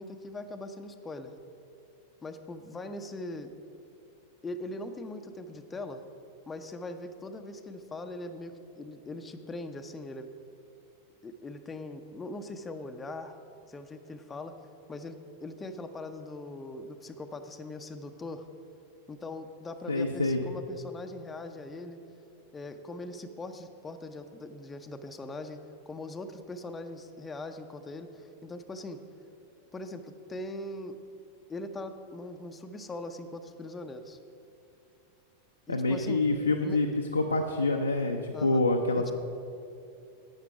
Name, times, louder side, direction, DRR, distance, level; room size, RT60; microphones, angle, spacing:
voice 1, 0.0-1.4 2.2-3.5 4.4-6.0 6.5-10.3 11.2-13.4 13.7-14.6 14.9-18.5 19.1-22.0 22.5-25.6 25.9-29.0 29.7-31.0 31.5-34.2 35.7-36.3 36.6-36.8 38.3-38.6 39.0-39.1, left 2 dB, 15° left, 7 dB, 0.6 m, -41 dB
voice 2, 19.9-20.4 35.7-36.9 37.1-39.1, left 2 dB, 80° left, 2 dB, 0.6 m, -26 dB
12.0 x 8.9 x 4.7 m, 2.6 s
figure-of-eight pair, 90°, 0 cm